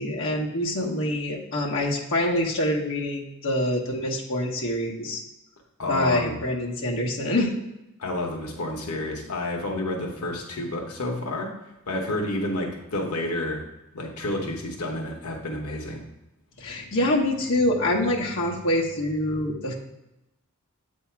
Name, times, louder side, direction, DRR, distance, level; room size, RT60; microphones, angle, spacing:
voice 1, 0.0-5.2 5.8-7.5 16.6-19.7, left 1 dB, 60° left, -3 dB, 1.1 m, -25 dB
voice 2, 5.8-6.4 8.0-11.5 11.9-13.6 13.9-16.0, left 1 dB, 90° left, 0 dB, 1.0 m, -29 dB
8.2 x 2.8 x 5.6 m, 0.92 s
head